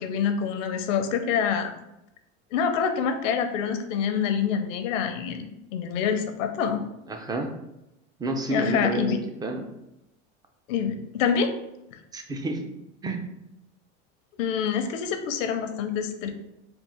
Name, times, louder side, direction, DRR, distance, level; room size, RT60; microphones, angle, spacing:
voice 1, 0.0-1.7 2.5-5.4 5.7-6.8 8.5-9.2 10.7-11.5 11.9-12.0 14.4-16.3, left 7 dB, 80° left, 7 dB, 0.6 m, -26 dB
voice 2, 7.1-7.5 8.2-9.7 12.1-12.6 13.0-13.2, right 2 dB, 10° right, 4 dB, 0.4 m, -29 dB
3.6 x 2.4 x 4.2 m, 0.89 s
supercardioid pair, 105°, 37 cm